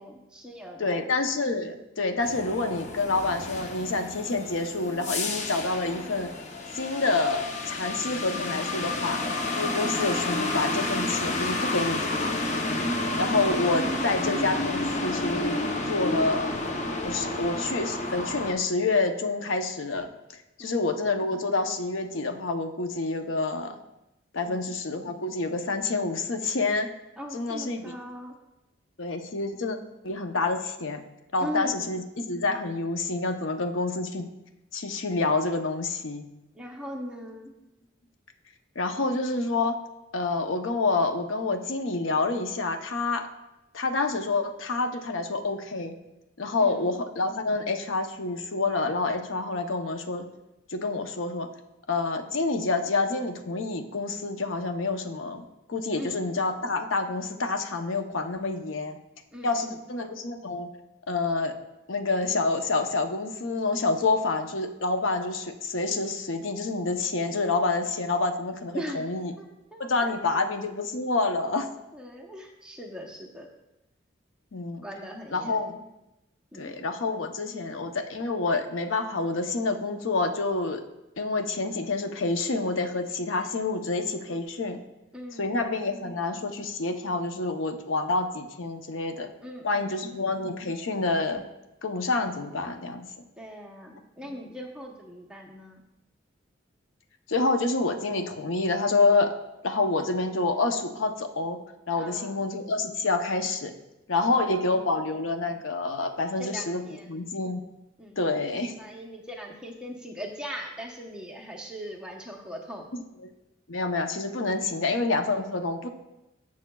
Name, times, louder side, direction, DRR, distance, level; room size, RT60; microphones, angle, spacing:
voice 1, 0.0-1.0 20.6-20.8 24.4-24.7 27.2-28.3 31.4-32.0 36.5-37.5 46.6-47.0 56.0-56.2 59.3-59.8 68.7-69.1 69.4-69.5 69.7-70.4 71.9-73.5 74.8-75.6 76.5-76.8 85.1-85.6 89.4-90.2 93.4-95.8 102.0-102.4 104.1-105.0 106.4-107.1 108.0-112.9, equal, 5° right, -1 dB, 0.9 m, -40 dB
voice 2, 0.8-6.3 6.7-12.4 13.2-15.6 15.9-16.6 17.0-20.1 20.6-23.7 24.3-26.9 27.3-27.9 29.0-29.8 30.0-31.0 31.3-34.3 34.7-36.2 38.8-39.8 40.1-43.3 43.7-46.0 46.4-50.3 50.7-51.5 51.9-59.0 59.4-60.7 61.1-61.5 61.9-69.3 69.8-71.7 74.5-74.8 75.3-75.8 76.6-80.8 81.2-84.8 85.4-89.3 89.6-91.4 91.8-93.1 94.2-94.3 97.3-99.3 99.6-101.6 101.9-103.7 104.1-106.8 107.1-107.6 108.2-108.7 112.9-113.0 113.7-115.9, left 3 dB, 85° left, 6 dB, 0.7 m, -28 dB
sound 1, 2.2-18.5, left 2 dB, 35° left, 0.7 m, -30 dB
14.5 x 6.4 x 2.3 m, 0.93 s
head